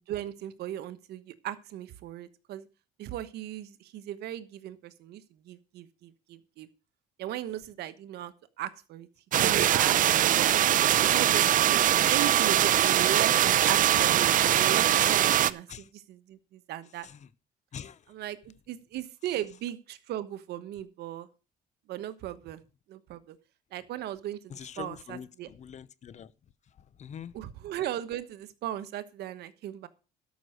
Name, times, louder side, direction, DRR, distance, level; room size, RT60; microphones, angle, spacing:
voice 1, 0.1-2.7 3.0-5.2 5.5-6.7 7.2-9.1 9.4-10.5 10.9-17.1 18.1-21.3 21.9-22.6 22.9-23.4 23.7-25.5 27.3-29.9, right 12 dB, 75° right, 1.1 m, -37 dB
sound 1, 9.3-15.5, right 11 dB, 50° right, 0.6 m, -22 dB
voice 2, 24.5-26.3 27.0-27.3, left 8 dB, 45° left, 0.8 m, -43 dB
12.5 x 6.0 x 6.4 m
cardioid pair, 110°, 17 cm